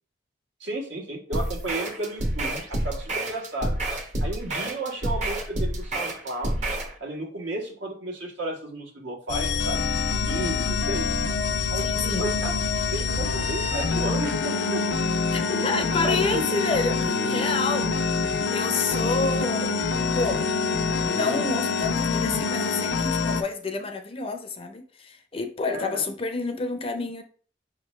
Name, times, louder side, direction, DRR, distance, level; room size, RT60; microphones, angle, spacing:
voice 1, 0.6-3.8 4.2-6.7 7.0-9.8 10.2-11.1 11.7-12.6 12.9-14.8 15.4-16.4 25.7-26.0, right 2 dB, 80° right, -1 dB, 1.4 m, -33 dB
sound 1, 1.3-6.9, right 1 dB, 40° right, 0.8 m, -29 dB
sound 2, 9.3-23.4, left 4 dB, 90° left, 0.5 m, -26 dB
voice 2, 10.2-10.6 11.8-12.2 15.3-18.1 18.5-19.7 20.1-20.5 21.0-27.2, left 4 dB, 30° left, 6 dB, 0.5 m, -29 dB
5.1 x 3.2 x 3.1 m, 0.44 s
head